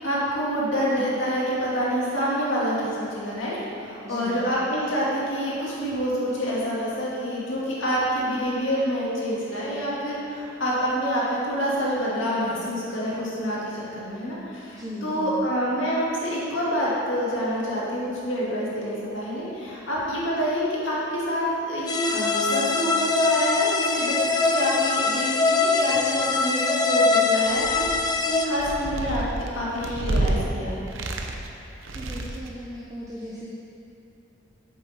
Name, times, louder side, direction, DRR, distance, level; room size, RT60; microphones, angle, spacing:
voice 1, 0.0-30.8, equal, 70° left, -7 dB, 2.1 m, -27 dB
voice 2, 4.0-4.5 14.8-15.5 31.9-33.5, equal, 15° right, -6 dB, 0.7 m, -37 dB
sound 1, 21.9-28.5, left 4 dB, 20° left, 0.4 m, -23 dB
sound 2, 27.5-28.1 28.5-30.4 30.9-31.5 31.8-32.5, right 1 dB, 70° right, 0.7 m, -29 dB
8.6 x 7.0 x 4.2 m, 2.7 s
head